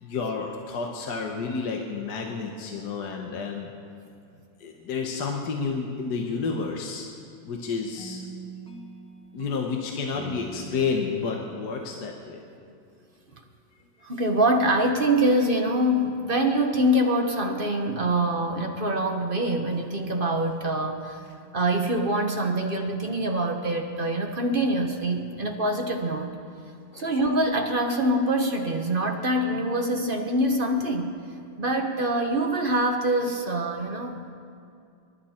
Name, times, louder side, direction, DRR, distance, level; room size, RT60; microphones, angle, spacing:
voice 1, 0.0-3.7 4.6-7.1 7.4-8.2 9.3-12.4 26.9-27.1, left 5 dB, 55° left, 1 dB, 1.6 m, -30 dB
sound 1, 8.0-13.1, right 2 dB, 5° left, 0.5 m, -44 dB
voice 2, 14.0-21.2 21.5-26.3 26.9-31.1 31.6-34.2, right 1 dB, 35° right, 3 dB, 0.9 m, -25 dB
26.5 x 12.0 x 4.3 m, 2.5 s
omnidirectional pair, 2.3 m